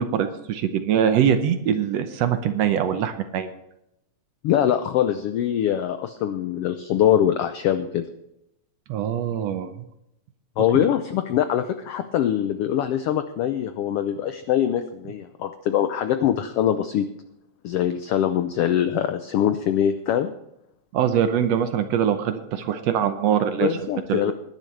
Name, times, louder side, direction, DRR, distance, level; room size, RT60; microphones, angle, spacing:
voice 1, 0.0-3.5 8.9-9.7 10.7-10.9 20.9-23.8 24.1-24.3, right 9 dB, 70° right, 9 dB, 1.8 m, -23 dB
voice 2, 4.4-8.0 10.6-17.1 17.6-20.3 23.6-24.3, left 10 dB, 90° left, 9 dB, 1.3 m, -23 dB
20.0 x 10.5 x 3.3 m, 0.82 s
omnidirectional pair, 3.5 m